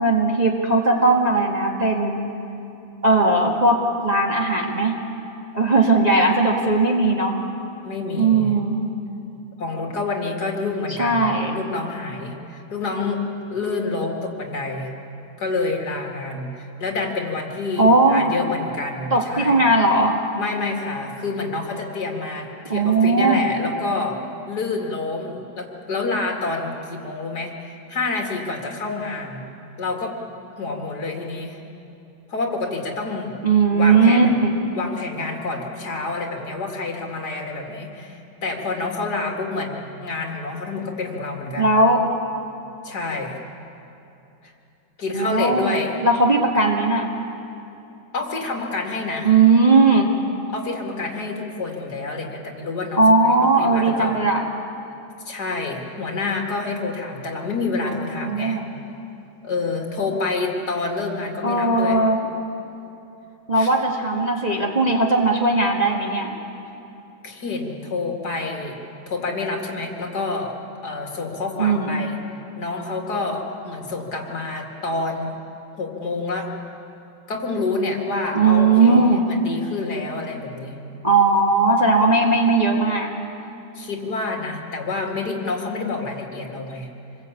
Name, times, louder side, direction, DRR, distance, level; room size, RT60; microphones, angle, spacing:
voice 1, 0.0-2.3 3.0-5.0 5.5-7.4 8.2-8.8 11.0-11.5 17.8-18.3 19.1-20.2 22.7-23.4 33.4-34.5 41.6-42.1 45.1-45.8 46.0-47.1 49.2-50.1 53.0-54.4 57.9-58.6 61.4-62.2 63.5-66.3 71.6-72.0 78.3-79.2 81.0-83.1, right 3 dB, 20° right, -1 dB, 1.7 m, -18 dB
voice 2, 7.8-8.5 9.6-13.2 13.5-14.9 15.4-19.6 20.4-24.2 24.5-29.5 29.8-30.2 30.6-31.6 32.3-33.4 33.7-34.3 34.7-41.7 42.8-43.4 44.4-44.5 45.0-46.0 48.1-49.3 50.5-54.2 55.3-58.6 59.4-62.0 63.5-63.9 66.7-66.8 67.2-68.8 69.1-70.6 70.8-72.2 72.6-75.4 75.8-76.5 77.3-80.8 83.7-86.9, left 3 dB, 50° left, 1 dB, 2.8 m, -28 dB
27.0 x 21.0 x 8.5 m, 2.8 s
omnidirectional pair, 2.2 m